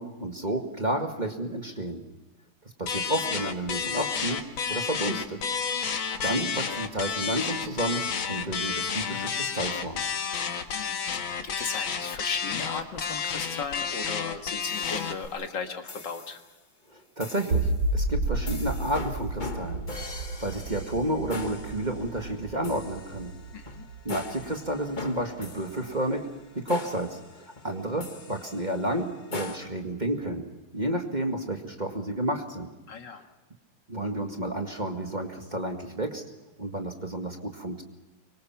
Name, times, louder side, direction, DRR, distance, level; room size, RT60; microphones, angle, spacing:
voice 1, 0.0-2.0 2.8-5.4 5.9-10.0 16.9-23.3 24.0-26.3 26.5-30.5 30.7-32.7 33.9-36.2 36.6-37.8, right 1 dB, 20° right, 3 dB, 2.0 m, -31 dB
sound 1, 2.9-15.3, left 6 dB, 90° left, 2.4 m, -31 dB
voice 2, 11.4-16.4 23.5-23.9 32.9-33.3, left 5 dB, 65° left, 5 dB, 2.4 m, -36 dB
sound 2, 14.6-15.4 15.9-16.5 17.2-17.8 18.5-29.6, left 3 dB, 30° left, 1.2 m, -41 dB
sound 3, 17.5-24.7, right 2 dB, 80° right, 4.2 m, -31 dB
25.0 x 24.0 x 5.9 m, 1.1 s
omnidirectional pair, 2.1 m